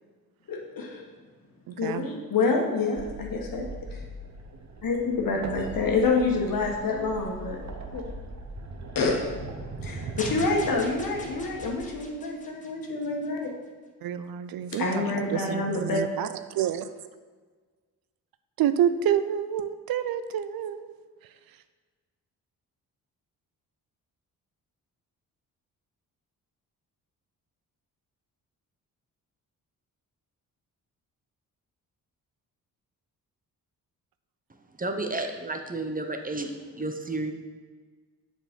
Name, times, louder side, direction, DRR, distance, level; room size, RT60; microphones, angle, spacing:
voice 1, 0.5-1.1 1.7-4.0 4.8-7.6 7.9-8.0 8.9-9.3 9.8-13.6 14.7-16.0, left 3 dB, 60° left, 0 dB, 1.5 m, -27 dB
voice 2, 1.7-2.1 14.0-16.3 16.5-16.9 18.6-20.9, right 9 dB, 65° right, 11 dB, 0.5 m, -28 dB
sound 1, 3.0-11.8, right 2 dB, 45° right, 1.0 m, -39 dB
sound 2, 10.2-13.5, left 2 dB, 20° left, 1.3 m, -43 dB
voice 3, 34.8-36.5 36.8-37.3, right 2 dB, 20° right, 5 dB, 0.8 m, -31 dB
7.0 x 4.4 x 5.3 m, 1.5 s
supercardioid pair, 60°, 38 cm